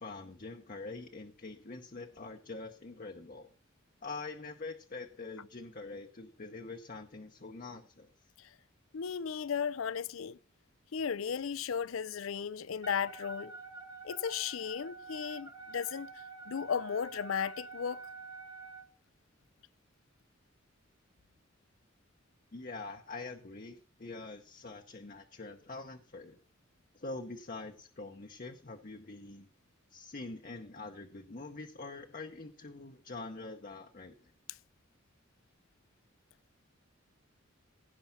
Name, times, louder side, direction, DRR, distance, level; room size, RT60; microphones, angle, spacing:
voice 1, 0.0-3.5 4.0-8.1 22.5-26.4 26.9-29.5 29.9-34.3, left 3 dB, 45° left, 0.8 m, -45 dB
voice 2, 8.9-10.4 10.9-13.5 14.0-16.1 16.5-18.0, left 7 dB, 90° left, 0.5 m, -35 dB
Wind instrument woodwind instrument, 12.8-18.9, right 4 dB, 20° right, 1.2 m, -47 dB
16.5 x 5.5 x 5.8 m
head